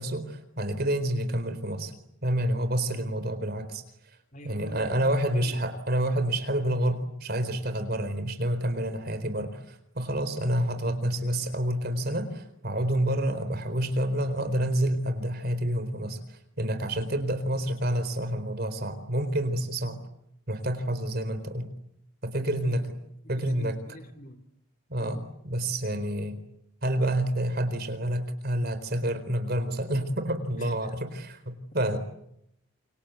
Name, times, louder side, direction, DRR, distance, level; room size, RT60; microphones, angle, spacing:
voice 1, 0.0-1.9 2.2-3.8 4.4-16.2 16.6-20.0 20.5-21.7 22.2-22.9 23.3-23.8 24.9-26.4 26.8-32.0, right 1 dB, 50° right, 10 dB, 4.2 m, -28 dB
voice 2, 4.3-5.7 22.4-22.8 23.2-24.4 25.0-25.2 30.6-30.7, equal, 40° left, 8 dB, 3.2 m, -46 dB
28.5 x 25.0 x 8.2 m, 0.77 s
head